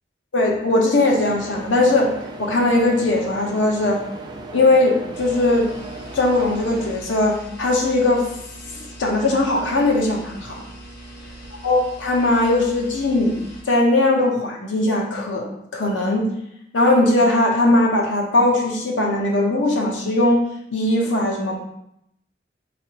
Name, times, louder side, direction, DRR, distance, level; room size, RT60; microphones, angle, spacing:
voice 1, 0.3-2.1 2.4-4.0 4.5-5.7 6.1-8.3 8.7-10.6 11.6-13.4 13.7-16.3 16.7-20.4 20.7-21.6, left 2 dB, 85° left, 0 dB, 0.8 m, -19 dB
sound 1, 1.1-6.9, right 2 dB, 25° right, 0.4 m, -37 dB
sound 2, 5.1-13.6, right 1 dB, 55° left, 1.0 m, -41 dB
4.1 x 3.2 x 2.9 m, 0.79 s
head